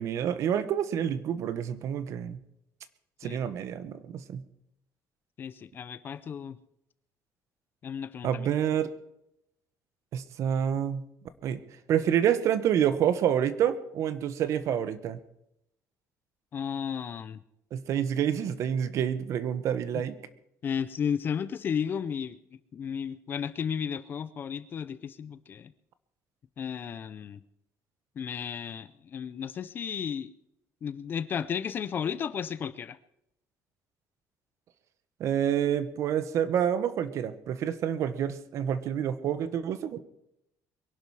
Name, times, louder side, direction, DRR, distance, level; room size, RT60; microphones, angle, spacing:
voice 1, 0.0-2.4 3.2-4.4 8.2-8.9 10.1-11.0 11.4-11.6 11.9-15.2 17.7-20.2 35.2-40.0, right 9 dB, 50° right, 14 dB, 1.0 m, -28 dB
voice 2, 5.4-6.6 7.8-8.5 16.5-17.4 19.9-20.0 20.6-22.4 22.7-25.7 26.6-27.4 28.2-30.3 30.8-33.0, left 7 dB, 30° left, 16 dB, 0.5 m, -33 dB
23.0 x 11.0 x 4.8 m, 0.80 s
cardioid pair, 180°, 7 cm